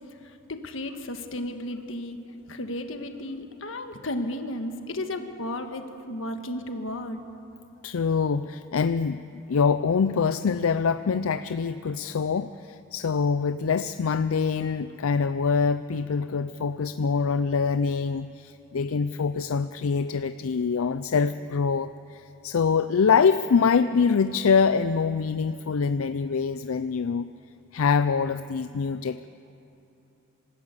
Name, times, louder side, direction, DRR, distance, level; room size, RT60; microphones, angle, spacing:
voice 1, 0.2-2.2 2.5-7.2, left 1 dB, 70° left, 6 dB, 1.6 m, -34 dB
voice 2, 7.8-27.3 27.7-29.3, left 5 dB, 90° left, 12 dB, 0.5 m, -24 dB
26.5 x 13.5 x 8.3 m, 2.8 s
head